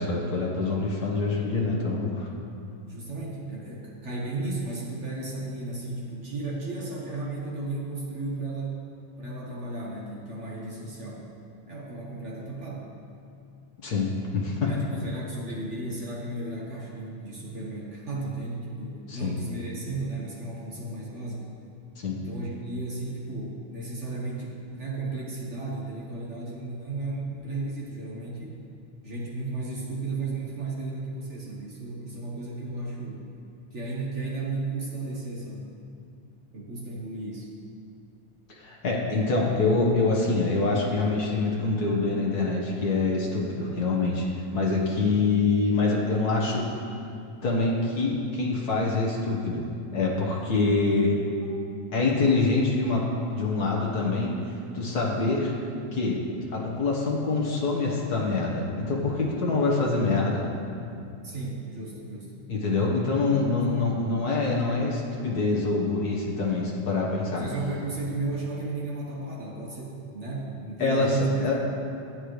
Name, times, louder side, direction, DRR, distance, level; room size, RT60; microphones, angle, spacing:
voice 1, 0.0-2.3 13.8-14.1 14.3-14.7 19.1-19.3 22.0-22.2 38.6-44.2 44.5-46.6 47.4-51.1 51.9-53.0 53.3-54.3 54.7-55.5 55.9-56.2 56.5-60.5 62.5-67.4 70.8-71.5, left 3 dB, 60° left, -2 dB, 1.0 m, -25 dB
voice 2, 2.9-8.8 9.2-11.2 11.7-12.9 14.6-21.5 22.1-28.6 29.0-33.2 33.7-35.7 36.5-37.5 61.2-62.3 63.7-63.9 67.3-71.5, right 2 dB, 55° right, -5 dB, 0.7 m, -34 dB
15.0 x 8.7 x 3.2 m, 2.5 s
omnidirectional pair, 3.5 m